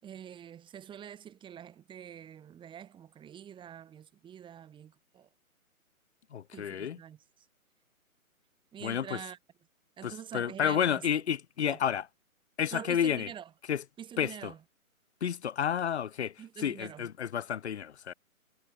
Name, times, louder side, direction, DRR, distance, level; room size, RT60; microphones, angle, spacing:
voice 1, 0.0-5.3 6.5-7.2 8.7-9.4 10.0-11.0 11.7-11.8 12.7-13.5 14.0-14.6 16.4-17.1, right 9 dB, 10° right, 6.3 m, -46 dB
voice 2, 6.3-7.0 8.8-9.2 10.0-12.1 12.6-13.3 13.7-13.8 14.2-14.5 15.2-18.1, left 8 dB, 50° left, 5.1 m, -31 dB
figure-of-eight pair, 145°, 43 cm